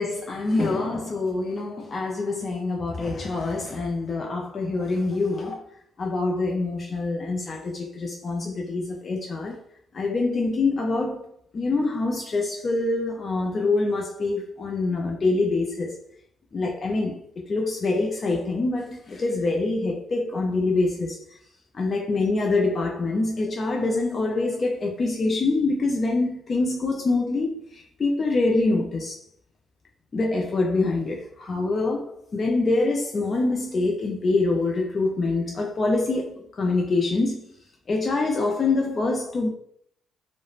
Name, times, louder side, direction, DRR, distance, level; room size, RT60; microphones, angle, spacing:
voice 1, 0.0-5.6 6.0-9.6 9.9-11.2 11.5-15.9 16.5-17.2 17.5-21.2 21.7-29.1 30.1-37.4 37.9-39.5, left 3 dB, 40° left, 0.4 m, -25 dB
2.3 x 2.0 x 3.0 m
cardioid pair, 90°, 0 cm